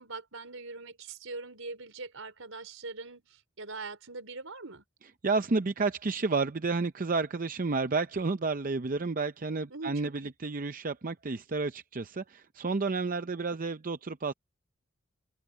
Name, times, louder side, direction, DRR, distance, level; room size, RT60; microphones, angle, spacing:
voice 1, 0.0-4.8 9.7-10.3, right 3 dB, 80° right, 4.1 m, -42 dB
voice 2, 5.2-14.3, right 3 dB, 40° right, 0.6 m, -31 dB
open air
head